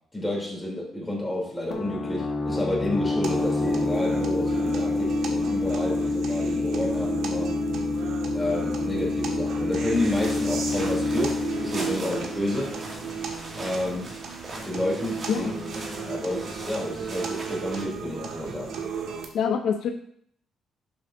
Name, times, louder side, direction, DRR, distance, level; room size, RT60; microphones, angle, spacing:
voice 1, 0.1-7.5 8.3-12.8 13.6-14.1 14.6-15.5 16.0-18.8, left 1 dB, 10° left, -3 dB, 3.1 m, -30 dB
sound 1, 1.7-13.2, left 3 dB, 45° left, 1.6 m, -28 dB
sound 2, 3.2-19.3, right 6 dB, 80° right, 1.6 m, -35 dB
sound 3, 9.8-17.8, right 2 dB, 35° right, 2.2 m, -40 dB
voice 2, 19.3-19.9, left 7 dB, 65° left, 5 dB, 0.7 m, -25 dB
11.5 x 7.2 x 2.7 m, 0.64 s
cardioid pair, 155°, 0 cm